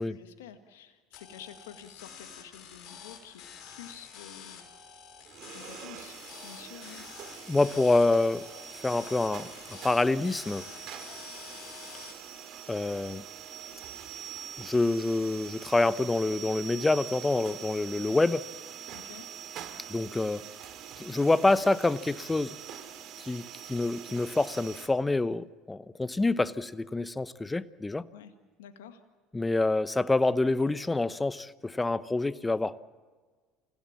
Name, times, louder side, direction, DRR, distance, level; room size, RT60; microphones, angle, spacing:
voice 1, 0.0-5.0 5.5-6.1 6.4-7.1 18.0-18.3 18.9-19.3 28.1-28.3 28.6-29.0, left 9 dB, 85° left, 7 dB, 1.8 m, -49 dB
sound 1, 1.1-12.1, left 7 dB, 55° left, 5.7 m, -48 dB
sound 2, 5.3-24.9, right 9 dB, 60° right, 2.7 m, -44 dB
voice 2, 7.5-8.5 8.8-10.7 12.7-13.2 14.6-18.4 19.9-20.4 21.0-22.6 23.2-28.0 29.3-32.8, left 2 dB, 15° left, 16 dB, 0.9 m, -27 dB
28.5 x 17.0 x 7.4 m, 1.5 s
hypercardioid pair, 75°, 0 cm